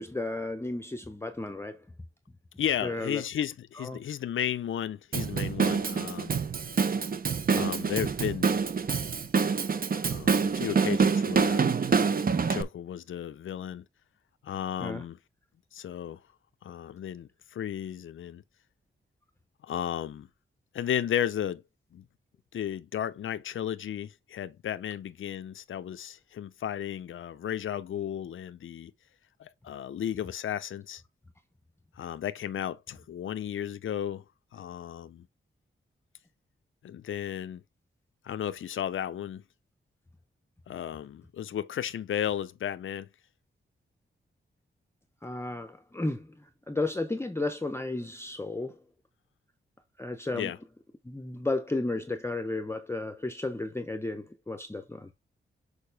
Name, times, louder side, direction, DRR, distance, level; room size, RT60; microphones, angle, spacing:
voice 1, 0.0-1.8 2.8-3.2 3.8-4.0 14.8-15.0 45.2-48.8 50.0-50.5 51.0-55.1, left 2 dB, 10° left, 0.7 m, -33 dB
voice 2, 2.6-6.4 7.5-8.5 10.0-11.7 12.0-12.2 12.5-13.8 14.4-15.2 15.7-16.2 16.6-18.4 19.6-20.3 20.7-21.6 21.9-22.0 22.5-28.9 29.4-31.0 32.0-34.2 34.5-35.3 36.8-37.6 38.2-39.4 40.7-43.1 50.3-50.6, left 10 dB, 75° left, 0.5 m, -34 dB
Drum kit / Drum, 5.1-12.6, right 5 dB, 45° right, 0.8 m, -26 dB
6.7 x 4.8 x 3.3 m
wide cardioid pair, 135°, 21 cm